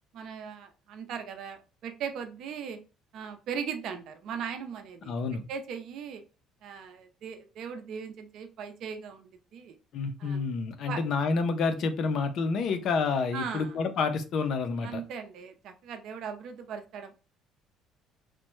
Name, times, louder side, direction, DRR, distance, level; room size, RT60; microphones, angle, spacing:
voice 1, 0.1-2.8 3.1-5.1 5.5-6.2 6.6-9.8 10.2-10.4 10.9-11.0 13.3-13.8 14.8-17.1, right 7 dB, 60° right, 7 dB, 0.4 m, -38 dB
voice 2, 5.1-5.4 9.9-15.0, left 4 dB, 55° left, 8 dB, 0.5 m, -29 dB
3.2 x 2.0 x 3.0 m, 0.33 s
cardioid pair, 140°, 0 cm